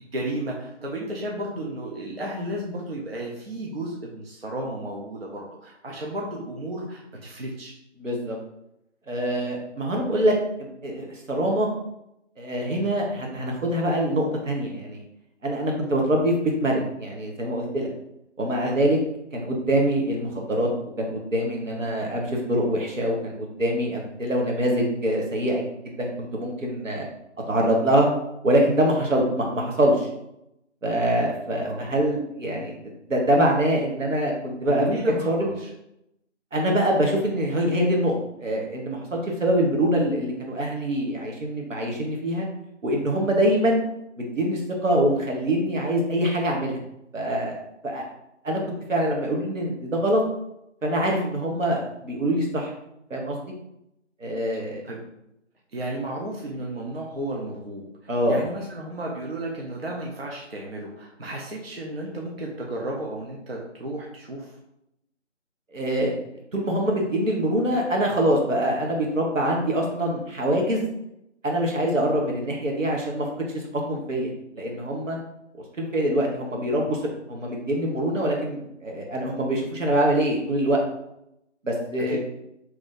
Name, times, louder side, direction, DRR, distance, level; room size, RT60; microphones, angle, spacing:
voice 1, 0.1-7.7 31.7-31.8 34.7-35.7 54.8-55.0 55.7-57.8 58.3-64.5 82.1-82.2, right 1 dB, 55° right, -2 dB, 0.6 m, -33 dB
voice 2, 8.0-8.4 9.1-11.7 12.4-15.0 15.4-17.9 18.4-19.0 19.3-20.7 21.0-27.1 27.5-28.1 28.4-30.1 30.8-32.8 33.1-34.9 35.2-35.5 36.5-42.5 42.8-43.8 44.2-46.8 47.1-48.0 48.4-48.6 48.9-50.2 50.8-52.7 53.1-53.4 54.2-54.8 58.1-58.4 65.7-66.3 66.5-70.9 71.4-73.3 73.5-74.3 74.5-75.2 75.8-77.0 77.3-80.8 81.6-82.2, right 1 dB, 85° right, -1 dB, 1.2 m, -24 dB
3.0 x 2.6 x 3.7 m, 0.82 s
figure-of-eight pair, 175°, 37 cm